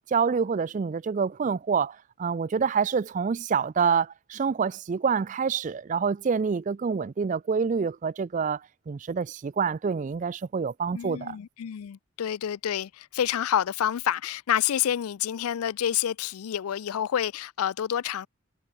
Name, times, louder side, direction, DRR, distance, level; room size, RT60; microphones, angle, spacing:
voice 1, 0.1-8.6 8.9-11.4, right 6 dB, 35° right, 0.3 m, -27 dB
voice 2, 10.9-18.3, left 10 dB, 85° left, 0.4 m, -28 dB
head